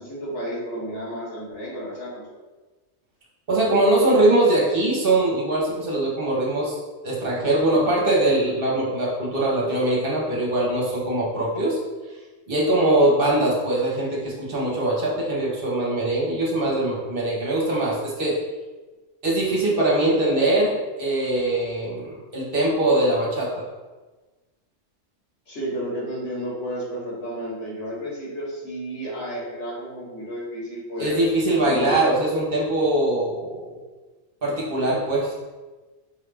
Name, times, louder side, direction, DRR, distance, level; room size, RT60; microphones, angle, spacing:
voice 1, 0.0-2.3 25.5-31.2 31.6-32.0, equal, 85° left, -6 dB, 1.6 m, -32 dB
voice 2, 3.5-6.8 7.0-11.8 12.5-18.4 19.2-23.7 31.0-33.8 34.4-35.3, right 1 dB, 55° right, -4 dB, 1.1 m, -22 dB
5.2 x 2.4 x 3.4 m, 1.2 s
omnidirectional pair, 1.2 m